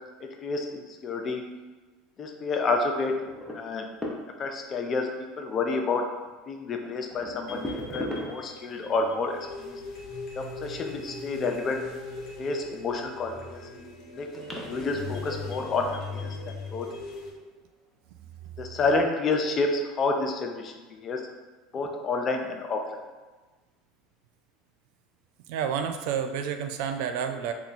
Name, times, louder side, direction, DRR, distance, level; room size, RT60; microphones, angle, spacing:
voice 1, 0.4-1.4 2.2-3.2 3.5-3.9 4.4-5.1 5.4-6.1 6.5-9.8 10.4-11.8 12.4-13.6 14.2-16.4 16.7-16.9 18.6-21.2 21.7-23.0, left 3 dB, 35° left, 3 dB, 0.5 m, -29 dB
about billiard ball, 3.3-4.7 6.2-6.3 6.8-8.7 12.6-13.2 13.8-13.9 14.3-16.3 17.3-17.6 18.4-18.5 19.0-19.1, left 1 dB, ahead, 0.7 m, -38 dB
sound 1, 7.5-17.3, left 3 dB, 50° left, 0.9 m, -39 dB
voice 2, 25.5-27.5, right 7 dB, 70° right, 7 dB, 0.3 m, -29 dB
2.9 x 2.3 x 4.0 m, 1.3 s
supercardioid pair, 100°, 0 cm